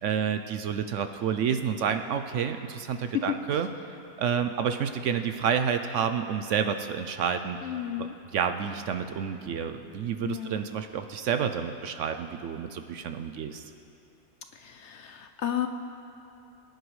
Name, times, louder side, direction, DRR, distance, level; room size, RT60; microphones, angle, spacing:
voice 1, 0.0-3.7 4.2-7.6 8.0-8.1 8.3-13.6, right 7 dB, 65° right, 8 dB, 0.8 m, -29 dB
voice 2, 7.6-8.1 10.2-10.6 14.5-15.7, left 11 dB, 65° left, 7 dB, 0.8 m, -32 dB
23.5 x 10.5 x 3.2 m, 2.7 s
omnidirectional pair, 1.5 m